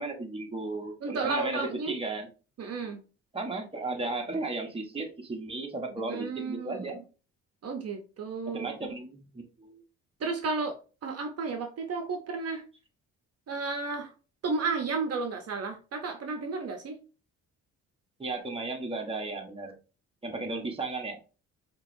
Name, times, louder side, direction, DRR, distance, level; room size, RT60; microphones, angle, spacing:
voice 1, 0.0-2.3 3.3-7.0 8.5-9.8 18.2-19.7 20.2-21.2, right 3 dB, 20° right, 2 dB, 1.2 m, -35 dB
voice 2, 1.0-1.9 2.6-3.0 6.0-6.9 7.6-8.8 10.2-10.8 11.0-12.6 13.5-14.1 14.4-17.0, right 4 dB, 55° right, 5 dB, 0.8 m, -32 dB
5.3 x 3.0 x 2.6 m, 0.34 s
cardioid pair, 90°, 30 cm